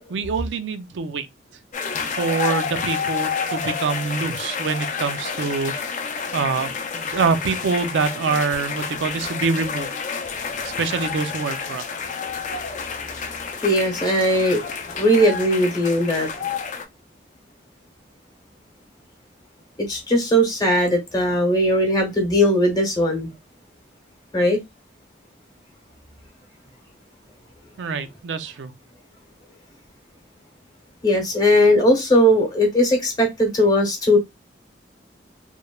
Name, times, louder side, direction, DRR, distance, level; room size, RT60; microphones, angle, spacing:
voice 1, 0.1-1.3 2.2-10.0 10.6-11.8 27.8-28.7, right 4 dB, 85° right, 0.4 m, -25 dB
sound 1, 1.7-16.8, left 6 dB, 45° left, 0.4 m, -29 dB
voice 2, 10.3-10.8 12.0-16.5 19.9-23.3 24.3-24.6 31.0-34.2, equal, 20° left, 0.8 m, -20 dB
3.0 x 2.1 x 2.2 m
head